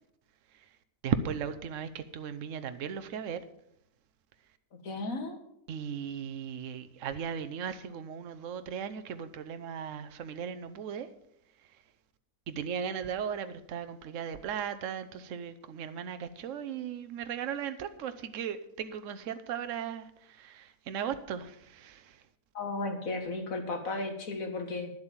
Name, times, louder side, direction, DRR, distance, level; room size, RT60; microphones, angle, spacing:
voice 1, 1.0-3.4 5.7-11.1 12.5-22.2, right 7 dB, 65° right, 10 dB, 1.1 m, -37 dB
voice 2, 4.8-5.4 22.5-24.9, left 2 dB, 75° left, 5 dB, 2.0 m, -34 dB
10.5 x 7.8 x 7.3 m, 0.75 s
omnidirectional pair, 1.4 m